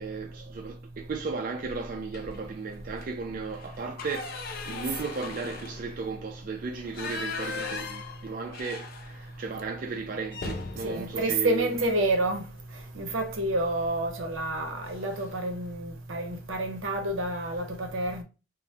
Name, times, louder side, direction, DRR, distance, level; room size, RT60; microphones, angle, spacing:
voice 1, 0.0-11.7, right 4 dB, 45° right, 0.3 m, -35 dB
sound 1, 2.1-2.5 2.9-3.1 3.4-9.5 9.8-9.9 10.3-12.4 13.8-14.0 14.4-14.6 14.9-15.5, left 4 dB, 50° left, 0.4 m, -39 dB
voice 2, 10.8-12.4 12.9-18.2, right 2 dB, 85° right, 0.7 m, -29 dB
2.7 x 2.1 x 3.1 m
head